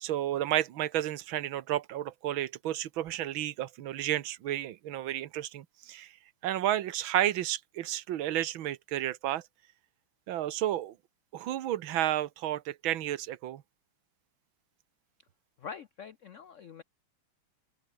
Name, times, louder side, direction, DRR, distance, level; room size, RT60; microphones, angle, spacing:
voice 1, 0.0-6.1 6.4-9.4 10.3-10.9 11.3-13.6, right 12 dB, 75° right, 1.8 m, -31 dB
voice 2, 15.6-16.8, left 6 dB, 80° left, 0.6 m, -44 dB
open air
omnidirectional pair, 2.3 m